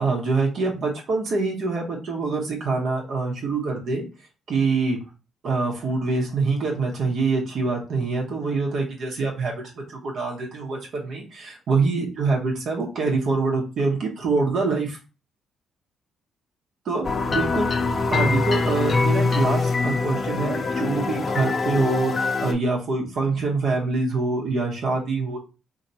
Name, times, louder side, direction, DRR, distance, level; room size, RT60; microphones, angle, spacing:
voice 1, 0.0-4.0 4.5-5.0 5.4-9.6 9.9-15.0 16.8-17.7 18.1-25.4, right 3 dB, 65° right, -2 dB, 1.0 m, -25 dB
sound 1, 17.0-22.5, left 3 dB, 40° left, 0.6 m, -23 dB
2.8 x 2.7 x 4.2 m, 0.31 s
cardioid pair, 90°, 0 cm